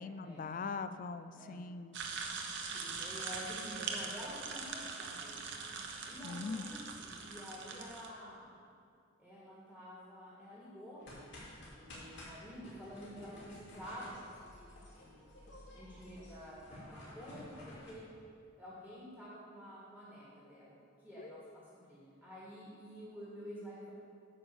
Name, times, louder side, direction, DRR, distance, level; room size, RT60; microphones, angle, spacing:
voice 1, 0.0-2.0 6.2-6.6 21.2-21.5, left 4 dB, 40° left, 12 dB, 0.4 m, -42 dB
voice 2, 1.3-1.6 2.7-5.4 6.0-8.6 9.2-11.1 11.4-15.3 15.7-18.0 18.6-20.8 21.0-23.9, equal, 5° left, -8 dB, 1.9 m, -49 dB
sound 1, 1.9-8.1, right 5 dB, 60° right, 0.9 m, -42 dB
sound 2, 11.0-17.9, left 1 dB, 60° left, 2.7 m, -53 dB
9.3 x 5.4 x 6.9 m, 2.3 s
head